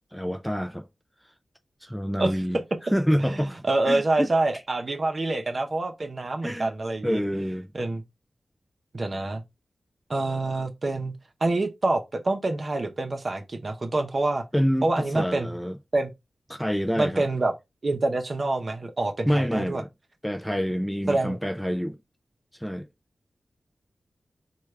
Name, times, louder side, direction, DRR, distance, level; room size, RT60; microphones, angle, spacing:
voice 1, 0.1-0.9 1.8-2.6 2.9-4.3 6.4-6.7 7.0-7.7 14.5-15.8 16.5-17.2 19.3-19.9 20.2-22.0 22.6-22.9, equal, ahead, 0.3 m, -27 dB
voice 2, 3.2-7.2 7.7-8.0 8.9-9.4 10.1-11.1 11.4-14.4 14.8-15.5 15.9-16.1 17.0-17.5 17.8-19.8 21.1-21.4, right 2 dB, 45° right, 0.7 m, -26 dB
4.5 x 2.3 x 3.2 m
wide cardioid pair, 85°, 0 cm